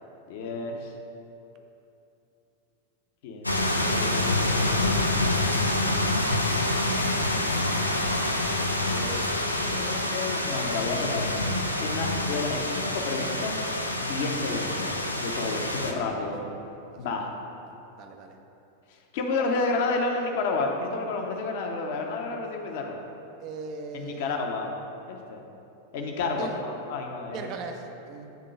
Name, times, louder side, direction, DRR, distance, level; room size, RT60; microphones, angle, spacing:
voice 1, 0.3-0.9 3.2-5.0 8.7-11.4 11.8-13.6 14.0-16.4 17.0-17.3 18.9-23.0 23.9-24.7 25.1-25.4 25.9-27.5, left 3 dB, 50° left, 2 dB, 0.9 m, -31 dB
sound 1, 3.4-15.9, left 1 dB, 85° left, 0.5 m, -27 dB
voice 2, 18.0-18.4 23.4-24.4 26.3-26.6 27.3-28.3, right 4 dB, 40° right, 4 dB, 0.6 m, -38 dB
9.4 x 3.7 x 5.1 m, 2.8 s
figure-of-eight pair, 90°, 0 cm